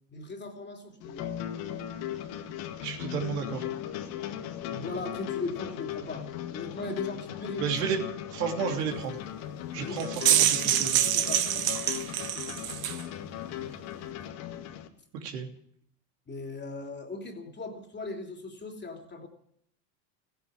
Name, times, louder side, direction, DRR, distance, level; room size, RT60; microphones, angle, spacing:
voice 1, 0.1-1.3 4.7-7.7 9.8-10.1 10.4-11.7 14.0-14.4 16.3-19.3, left 2 dB, 20° left, 3 dB, 3.0 m, -39 dB
sound 1, 1.0-14.9, left 11 dB, 65° left, 2.1 m, -37 dB
voice 2, 2.8-3.7 7.6-8.0 8.3-9.2 9.7-11.0 15.2-15.5, right 6 dB, 75° right, 2 dB, 3.1 m, -32 dB
sound 2, 10.0-13.0, right 11 dB, 45° right, 1.3 m, -25 dB
15.5 x 9.4 x 9.7 m, 0.69 s
hypercardioid pair, 95°, 49 cm